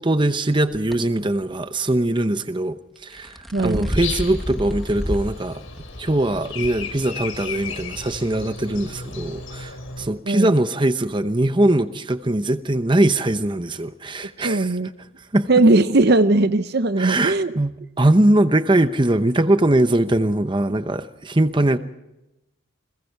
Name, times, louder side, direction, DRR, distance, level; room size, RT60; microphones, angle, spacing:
voice 1, 0.0-5.6 6.0-14.8 15.3-15.5 17.0-21.8, right 1 dB, 25° right, 0.9 m, -21 dB
sound 1, 0.9-1.0 3.0-5.3 5.8-5.9 6.6-6.7, equal, ahead, 1.5 m, -29 dB
voice 2, 3.5-3.9 10.3-10.5 14.4-14.9 15.5-17.6, right 2 dB, 50° right, 0.7 m, -18 dB
Breathing, 4.0-10.1, left 4 dB, 75° left, 5.1 m, -34 dB
29.5 x 21.5 x 4.7 m
head